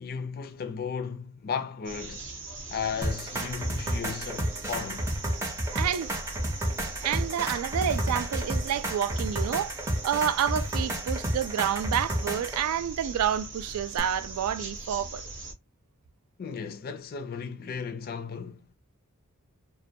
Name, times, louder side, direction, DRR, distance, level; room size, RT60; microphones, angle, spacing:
voice 1, 0.0-2.3 2.7-5.2 16.4-18.7, left 6 dB, 45° left, 0.4 m, -35 dB
sound 1, 1.8-15.5, right 3 dB, 55° right, 0.7 m, -41 dB
sound 2, 3.0-12.6 14.0-14.1, right 1 dB, 15° right, 0.5 m, -31 dB
voice 2, 5.7-6.1 7.0-9.7 10.0-15.2, right 9 dB, 75° right, 0.3 m, -29 dB
2.2 x 2.2 x 2.6 m
head